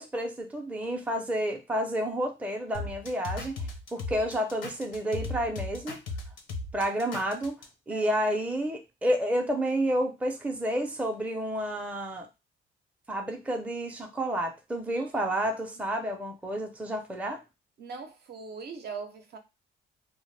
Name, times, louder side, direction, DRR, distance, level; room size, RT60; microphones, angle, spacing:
voice 1, 0.0-6.0 6.7-7.6 7.9-12.3 13.1-17.4, right 1 dB, 5° right, 0.5 m, -30 dB
sound 1, 2.7-7.6, left 3 dB, 75° left, 0.7 m, -36 dB
voice 2, 7.9-8.2 15.0-15.1 17.8-19.4, right 5 dB, 55° right, 0.5 m, -41 dB
2.1 x 2.0 x 3.2 m
cardioid pair, 90°, 20 cm